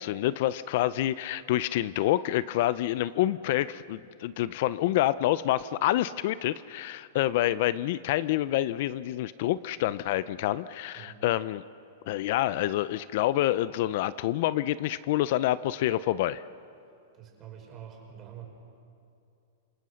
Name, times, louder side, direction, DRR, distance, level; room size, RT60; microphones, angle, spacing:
voice 1, 0.0-11.6 12.1-16.4, left 14 dB, 50° left, 16 dB, 0.5 m, -27 dB
voice 2, 17.1-18.4, right 9 dB, 25° right, 0 dB, 5.5 m, -46 dB
28.0 x 26.5 x 6.4 m, 2.5 s
supercardioid pair, 160°, 0 cm